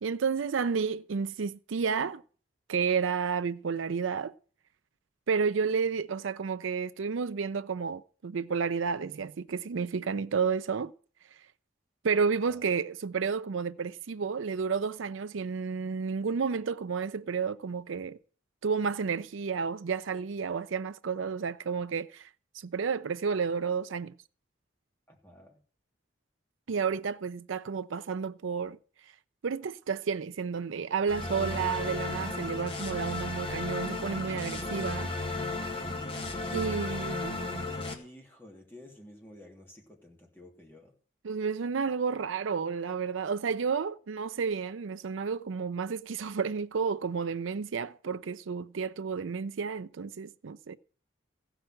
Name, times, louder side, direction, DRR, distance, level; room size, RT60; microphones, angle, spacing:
voice 1, 0.0-2.2 2.7-4.3 5.3-10.9 12.0-18.2 18.6-22.3 22.5-24.1 26.7-28.8 29.4-35.1 36.5-37.6 41.2-50.8, right 5 dB, 80° right, 0.5 m, -31 dB
voice 2, 25.1-25.6 37.9-40.9, left 1 dB, 10° left, 2.8 m, -52 dB
sound 1, 31.1-37.9, left 2 dB, 25° left, 1.6 m, -34 dB
15.0 x 6.0 x 7.6 m
head